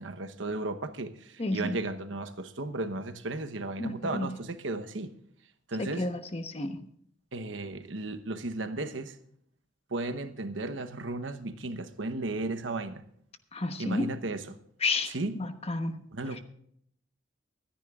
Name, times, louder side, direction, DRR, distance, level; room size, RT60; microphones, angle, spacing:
voice 1, 0.0-5.1 5.7-6.1 7.3-9.1 9.9-13.0 13.8-14.6 15.1-15.3 16.1-16.4, right 2 dB, 85° right, 1.0 m, -35 dB
voice 2, 1.4-1.8 3.8-4.3 5.8-6.8 13.5-14.1 14.8-15.9, left 2 dB, 35° left, 1.1 m, -31 dB
24.0 x 10.0 x 2.5 m
head